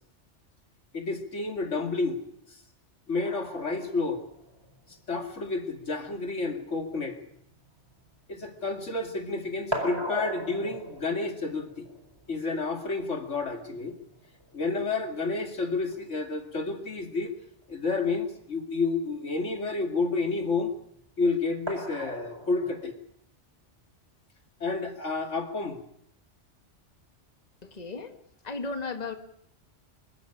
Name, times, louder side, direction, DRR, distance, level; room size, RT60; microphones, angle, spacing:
voice 1, 0.9-2.2 2.5-2.6 3.1-4.2 5.1-7.2 8.3-11.9 12.3-14.0 14.5-17.3 17.7-20.7 21.2-22.9 24.6-25.8, left 3 dB, 85° left, 5 dB, 2.8 m, -30 dB
sound 1, 3.2-8.9 9.2-16.2 17.6-17.7 18.1-18.2 21.7-22.9, equal, 20° right, 4.5 m, -40 dB
voice 2, 27.6-28.2 28.4-29.1, left 3 dB, 35° left, 6 dB, 1.8 m, -35 dB
25.0 x 14.0 x 9.9 m, 0.71 s
omnidirectional pair, 1.2 m